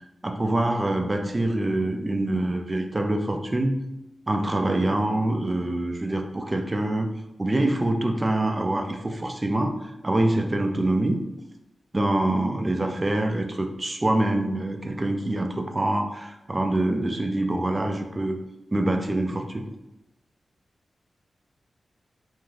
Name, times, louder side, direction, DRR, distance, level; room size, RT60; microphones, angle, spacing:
voice 1, 0.2-3.7 4.3-7.1 7.4-9.8 10.0-11.2 11.9-18.4 18.7-19.7, right 1 dB, 30° right, 4 dB, 0.4 m, -25 dB
2.5 x 2.3 x 3.3 m, 0.91 s
cardioid pair, 70°, 0 cm